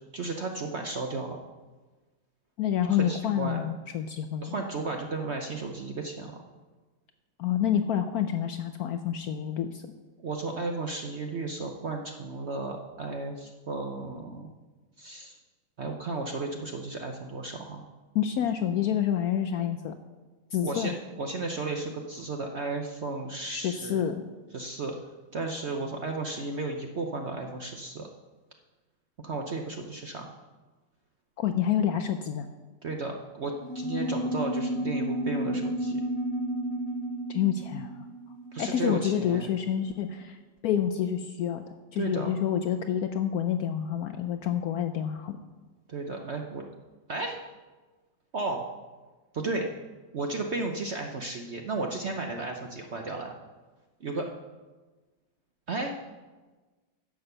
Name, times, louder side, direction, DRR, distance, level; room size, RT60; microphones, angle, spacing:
voice 1, 0.1-1.4 2.9-3.6 4.4-6.3 10.2-14.5 15.0-15.4 15.8-17.8 20.6-24.0 24.5-25.0 25.3-28.1 29.2-30.3 32.8-36.0 38.5-39.5 42.0-42.3 45.9-46.6 47.1-47.4 48.3-48.7 49.3-49.7 50.1-53.3 54.0-54.3 55.7-56.0, right 3 dB, 55° right, 3 dB, 0.8 m, -34 dB
voice 2, 2.6-4.5 7.4-9.9 18.1-19.9 20.5-21.0 23.5-24.2 31.4-32.5 37.3-38.1 38.6-40.4 40.6-45.4, left 9 dB, 70° left, 8 dB, 0.9 m, -28 dB
sound 1, 33.6-39.5, equal, 25° left, 0.7 m, -32 dB
10.5 x 7.1 x 6.7 m, 1.3 s
omnidirectional pair, 2.0 m